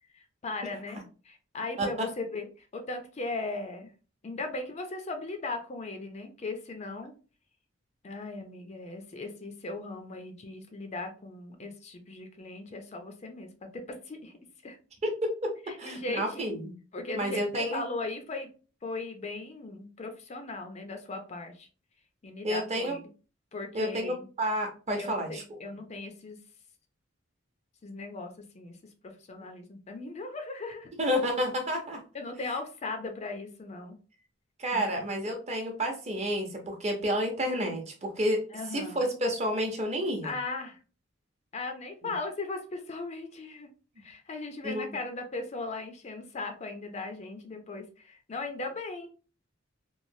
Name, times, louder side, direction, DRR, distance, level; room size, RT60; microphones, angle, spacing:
voice 1, 0.1-3.9 4.2-7.1 8.0-14.3 14.6-14.8 15.7-16.6 16.9-18.5 18.8-21.7 22.2-23.1 23.5-24.3 25.0-26.4 27.8-28.8 29.0-30.9 32.1-34.0 34.7-34.9 38.5-39.1 40.2-40.8 41.5-43.7 44.0-49.1, left 3 dB, 35° left, 6 dB, 0.4 m, -38 dB
voice 2, 1.8-2.1 15.0-16.7 17.1-17.8 22.4-23.0 23.7-25.6 31.0-32.0 34.6-38.4 38.7-40.3 42.0-42.1 44.6-45.0, equal, 35° right, 2 dB, 0.7 m, -30 dB
3.1 x 2.3 x 2.6 m, 0.36 s
head